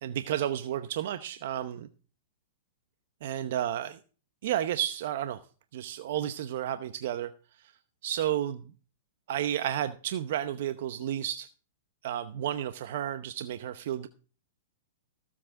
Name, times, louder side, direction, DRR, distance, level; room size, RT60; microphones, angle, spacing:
voice 1, 0.0-1.9 3.2-4.0 4.4-5.4 5.7-7.3 8.0-8.6 9.3-11.5 12.0-14.1, right 11 dB, 60° right, 11 dB, 0.8 m, -32 dB
17.5 x 7.6 x 3.7 m, 0.38 s
hypercardioid pair, 130°, 0 cm